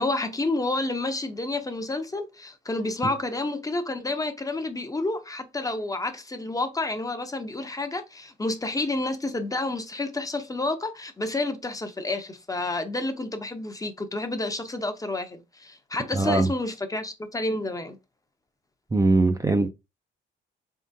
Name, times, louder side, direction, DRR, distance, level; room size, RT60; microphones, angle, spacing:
voice 1, 0.0-18.0, left 2 dB, 15° left, 0.7 m, -30 dB
voice 2, 16.1-16.5 18.9-19.7, right 2 dB, 15° right, 0.5 m, -21 dB
4.2 x 3.7 x 2.6 m
cardioid pair, 90°, 20 cm